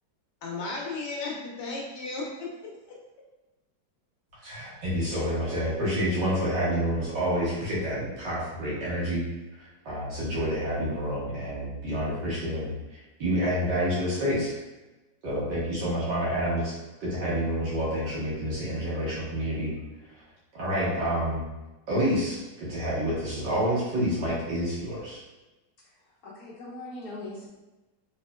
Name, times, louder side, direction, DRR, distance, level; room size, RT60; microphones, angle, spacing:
voice 1, 0.4-2.7, left 3 dB, 75° left, -3 dB, 1.4 m, -34 dB
voice 2, 4.4-9.3 9.6-14.5 15.2-16.7 17.0-19.7 20.5-21.4 21.9-25.2, equal, 80° right, -7 dB, 1.9 m, -28 dB
voice 3, 26.2-27.5, left 2 dB, 60° left, -7 dB, 1.4 m, -40 dB
4.0 x 3.1 x 2.2 m, 1.1 s
omnidirectional pair, 1.9 m